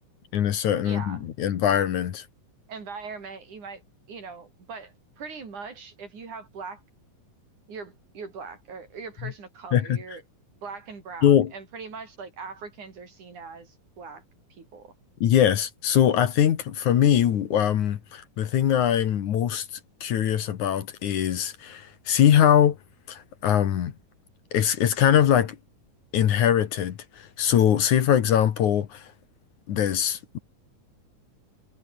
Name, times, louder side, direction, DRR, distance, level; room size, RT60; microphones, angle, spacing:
voice 1, 0.3-2.3 9.2-9.3 9.7-10.0 11.2-11.5 15.2-22.8 23.1-23.9 24.5-25.6 26.1-29.1 29.7-30.4, left 10 dB, 65° left, 2.8 m, -22 dB
voice 2, 0.8-1.2 2.7-3.8 4.1-6.8 7.7-10.2 10.5-14.2 14.5-14.9, right 5 dB, 60° right, 6.2 m, -41 dB
omnidirectional pair, 3.9 m